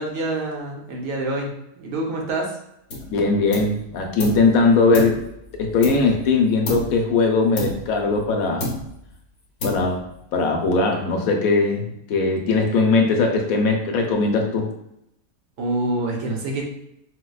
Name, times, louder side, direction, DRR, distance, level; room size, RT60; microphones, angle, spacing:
voice 1, 0.0-2.5 15.6-16.7, right 2 dB, 70° right, 0 dB, 1.0 m, -26 dB
sound 1, 2.9-3.2 3.5-4.5 4.9-6.3 6.6-7.1 7.6-8.3 8.6-9.1 9.6-10.2, left 1 dB, 55° left, 1.0 m, -30 dB
voice 2, 3.1-5.2 5.6-8.7 9.6-10.0 10.3-14.7, left 3 dB, 75° left, 2 dB, 1.0 m, -20 dB
4.6 x 2.1 x 2.3 m, 0.80 s
omnidirectional pair, 1.6 m